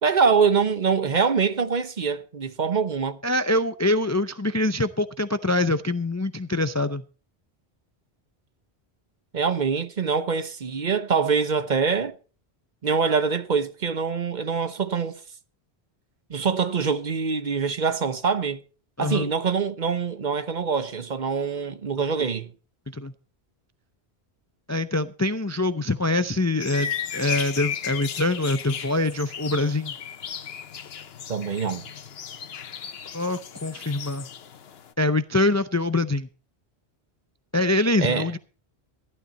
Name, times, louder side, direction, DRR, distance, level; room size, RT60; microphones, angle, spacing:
voice 1, 0.0-3.2 9.3-12.1 12.8-15.2 16.3-18.6 19.0-22.5 31.3-31.8 38.0-38.3, right 5 dB, 50° right, 0.9 m, -24 dB
voice 2, 3.2-7.0 19.0-19.3 22.9-23.1 24.7-29.9 33.1-34.3 35.0-36.3 37.5-38.4, left 2 dB, 25° left, 0.4 m, -24 dB
sound 1, 26.6-34.9, left 8 dB, 70° left, 1.0 m, -35 dB
14.0 x 12.0 x 4.2 m
omnidirectional pair, 1.1 m